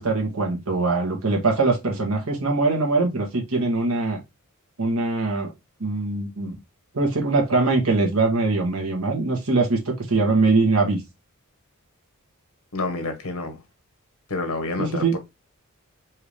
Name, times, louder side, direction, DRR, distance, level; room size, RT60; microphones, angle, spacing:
voice 1, 0.0-4.2 4.8-5.5 5.8-6.6 6.9-11.0 14.8-15.2, right 3 dB, 85° right, 1.6 m, -22 dB
voice 2, 12.7-13.6 14.3-15.2, left 3 dB, 85° left, 1.3 m, -28 dB
4.6 x 3.0 x 3.3 m
head